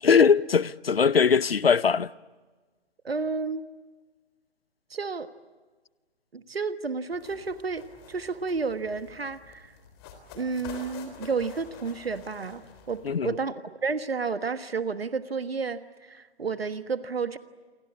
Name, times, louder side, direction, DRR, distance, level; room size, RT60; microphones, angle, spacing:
voice 1, 0.0-2.1 13.0-13.4, left 6 dB, 60° left, 0.8 m, -21 dB
voice 2, 3.0-3.6 4.9-5.3 6.3-9.7 10.3-17.4, right 4 dB, 65° right, 1.5 m, -31 dB
sound 1, 7.1-13.2, left 6 dB, 20° left, 3.6 m, -48 dB
28.5 x 24.0 x 8.5 m
figure-of-eight pair, 140°, 33 cm